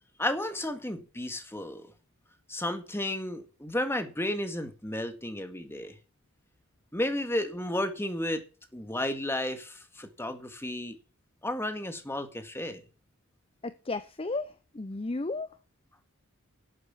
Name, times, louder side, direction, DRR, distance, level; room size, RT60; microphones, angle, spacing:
voice 1, 0.2-1.8 2.5-5.9 6.9-8.4 8.7-11.0 11.4-12.8, left 1 dB, 10° left, 2.0 m, -32 dB
voice 2, 13.6-15.6, left 3 dB, 25° left, 0.6 m, -34 dB
12.0 x 8.0 x 7.5 m
head